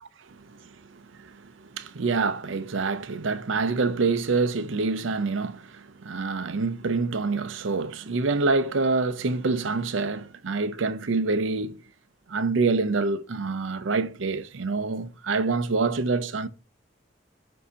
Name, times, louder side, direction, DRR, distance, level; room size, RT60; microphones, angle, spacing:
voice 1, 0.3-11.8 12.3-16.5, right 3 dB, 75° right, 0.6 m, -26 dB
7.5 x 2.7 x 5.5 m
head